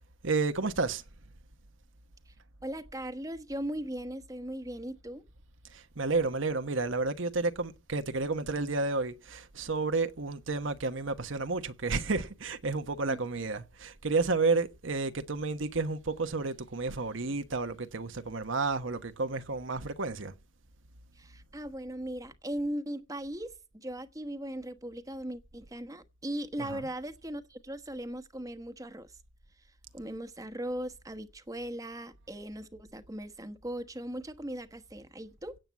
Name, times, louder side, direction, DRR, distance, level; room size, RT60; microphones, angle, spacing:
voice 1, 0.2-1.0 5.7-20.3 26.6-26.9, right 3 dB, 75° right, 1.1 m, -31 dB
voice 2, 2.6-5.2 13.1-13.2 21.1-29.2 29.9-35.6, right 1 dB, 15° right, 1.2 m, -38 dB
17.0 x 7.6 x 8.3 m
head